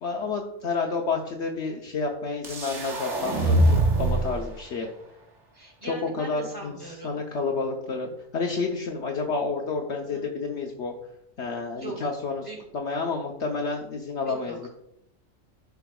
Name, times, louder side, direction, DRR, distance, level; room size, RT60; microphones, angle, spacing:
voice 1, 0.0-3.6 4.0-4.9 5.9-6.8 7.0-10.9 11.4-12.5 12.7-14.7, left 4 dB, 60° left, 1 dB, 1.1 m, -30 dB
sound 1, 2.4-4.4, right 1 dB, 65° right, 1.6 m, -23 dB
voice 2, 5.5-7.2 10.1-10.2 11.7-12.1 12.4-12.6 14.2-14.7, right 2 dB, 15° right, -2 dB, 2.7 m, -40 dB
12.5 x 5.8 x 2.3 m, 0.77 s
omnidirectional pair, 1.4 m